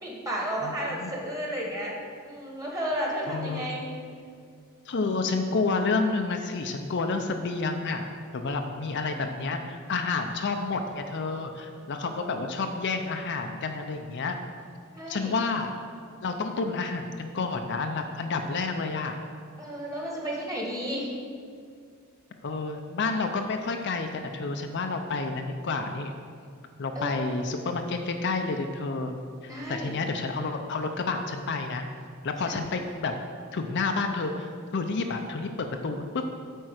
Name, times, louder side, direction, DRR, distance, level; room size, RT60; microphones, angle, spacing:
voice 1, 0.0-1.9 2.2-3.8 8.5-8.7 9.1-9.3 12.1-12.4 14.9-15.3 19.6-21.1 26.9-27.4 29.4-29.9, equal, 15° right, -3 dB, 1.6 m, -33 dB
voice 2, 0.6-1.1 3.3-3.7 4.9-8.1 8.3-14.4 15.1-15.7 16.2-19.2 22.4-26.1 26.8-29.2 29.4-31.8 32.2-33.1 33.5-36.3, left 3 dB, 55° left, 5 dB, 0.6 m, -30 dB
8.7 x 4.6 x 6.5 m, 2.2 s
head